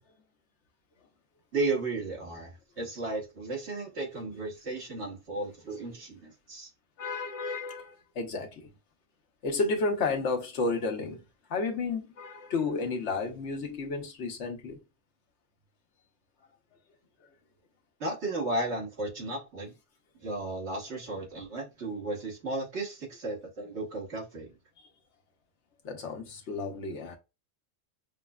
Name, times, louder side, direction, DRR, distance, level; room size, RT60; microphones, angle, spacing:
voice 1, 1.5-6.7 18.0-19.7 20.2-24.5, right 2 dB, 80° right, 1.7 m, -34 dB
voice 2, 7.0-8.7 9.4-11.2 11.5-14.8 25.8-27.2, left 3 dB, 80° left, 1.2 m, -32 dB
5.6 x 2.1 x 2.3 m
omnidirectional pair, 1.2 m